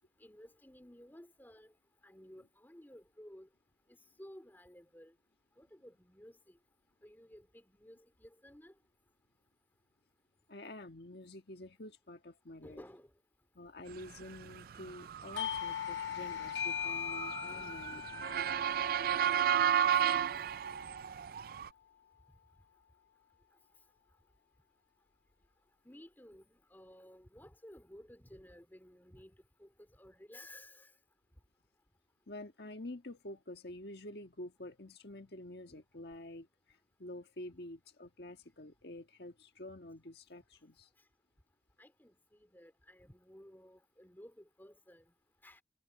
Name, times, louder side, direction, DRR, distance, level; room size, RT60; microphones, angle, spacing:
voice 1, 0.2-1.7 2.0-3.5 3.9-5.1 5.6-6.6 7.0-8.7 12.6-13.1 15.3-15.5 17.5-17.8 25.8-30.9 41.8-45.1 45.4-45.6, left 1 dB, 10° left, 2.5 m, -55 dB
voice 2, 10.5-12.8 13.5-18.4 32.3-36.5 37.0-40.9, left 1 dB, 60° left, 1.6 m, -48 dB
Motor vehicle (road) / Siren, 14.4-21.7, right 9 dB, 55° right, 0.3 m, -33 dB
Doorbell, 15.4-20.6, left 8 dB, 85° left, 0.9 m, -40 dB
head